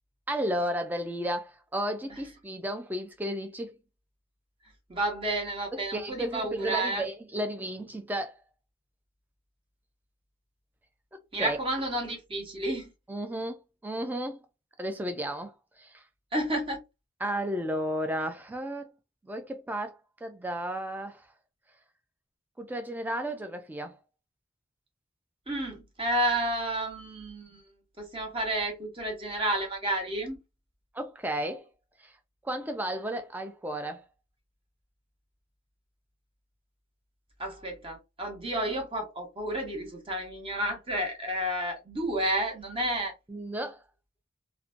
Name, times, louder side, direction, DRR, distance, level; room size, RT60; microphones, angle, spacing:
voice 1, 0.3-3.8 5.7-8.4 11.3-11.6 13.1-14.4 14.8-16.0 17.2-18.9 19.2-21.3 22.6-24.0 30.9-31.7 32.0-32.1 32.4-34.1 43.3-43.8, right 1 dB, 10° right, 0.3 m, -33 dB
voice 2, 4.9-7.0 11.3-12.9 16.3-16.8 25.5-27.6 28.0-30.4 37.4-43.1, right 1 dB, 25° right, 0.8 m, -31 dB
2.5 x 2.1 x 2.5 m
head